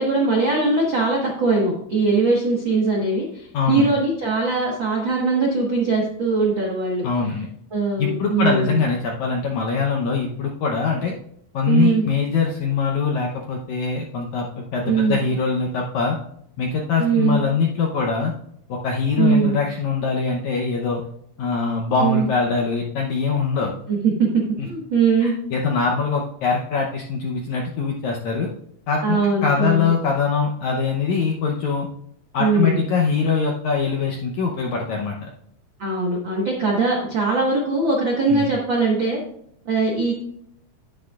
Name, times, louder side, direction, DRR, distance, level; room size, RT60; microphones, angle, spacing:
voice 1, 0.0-7.0 7.7-8.8 11.7-12.0 14.9-15.2 17.0-17.4 19.2-19.6 22.0-22.3 23.9-25.4 29.0-29.9 32.4-32.8 35.8-39.2 39.6-40.1, right 4 dB, 90° right, -2 dB, 1.0 m, -21 dB
voice 2, 3.5-3.9 7.0-7.5 8.0-11.1 11.5-16.2 16.6-18.3 18.7-21.0 21.4-23.7 24.6-24.7 25.2-28.5 28.9-31.9 32.3-35.3 38.3-38.5, left 5 dB, 85° left, 0 dB, 1.6 m, -23 dB
10.0 x 9.9 x 2.4 m, 0.70 s
omnidirectional pair, 4.5 m